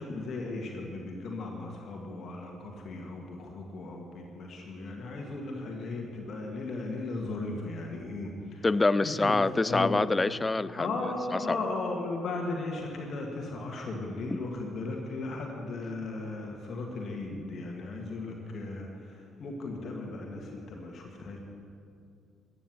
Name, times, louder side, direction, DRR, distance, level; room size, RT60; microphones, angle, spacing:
voice 1, 0.0-8.7 9.0-9.4 9.7-10.0 10.8-21.4, left 3 dB, 55° left, 1 dB, 1.8 m, -36 dB
voice 2, 8.6-11.0 11.3-11.6, left 3 dB, 25° left, 17 dB, 0.4 m, -26 dB
14.5 x 8.9 x 7.6 m, 2.4 s
figure-of-eight pair, 45°, 0 cm